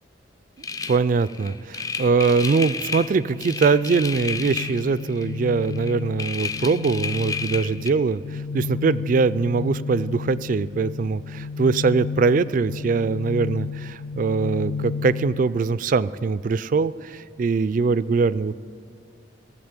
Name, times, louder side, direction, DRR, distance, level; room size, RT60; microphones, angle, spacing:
sound 1, 0.6-5.4 5.6-7.9, left 5 dB, 20° left, 0.4 m, -32 dB
voice 1, 0.9-18.6, right 4 dB, 45° right, 17 dB, 0.3 m, -22 dB
sound 2, 2.9-15.6, left 5 dB, 80° left, 0.5 m, -33 dB
17.0 x 7.4 x 8.9 m, 2.4 s
head